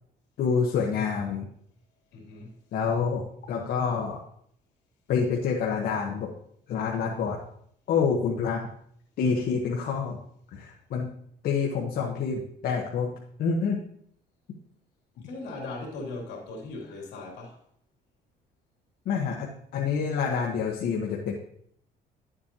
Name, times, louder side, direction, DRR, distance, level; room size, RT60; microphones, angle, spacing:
voice 1, 0.4-1.5 2.7-3.2 3.5-4.2 5.1-6.3 6.7-7.4 7.9-8.6 9.2-10.2 10.5-11.1 11.4-13.1 13.4-13.8 19.0-21.3, left 6 dB, 65° left, 1.3 m, -27 dB
voice 2, 2.1-2.5 15.2-17.6, left 2 dB, 80° left, 3.0 m, -38 dB
11.0 x 7.4 x 2.9 m
cardioid pair, 110°, 17 cm